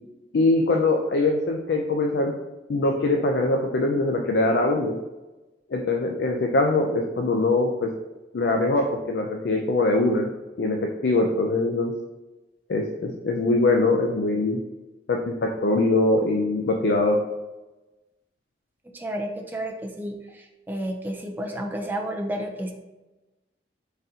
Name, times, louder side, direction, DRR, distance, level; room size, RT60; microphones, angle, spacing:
voice 1, 0.3-2.3 2.7-5.0 5.7-7.9 8.3-10.3 10.6-11.9 12.7-14.6 15.1-15.2 15.6-17.2, left 2 dB, 75° left, 2 dB, 0.4 m, -22 dB
voice 2, 18.8-22.7, right 1 dB, 10° right, 2 dB, 0.4 m, -31 dB
4.0 x 3.6 x 2.7 m, 1.1 s
head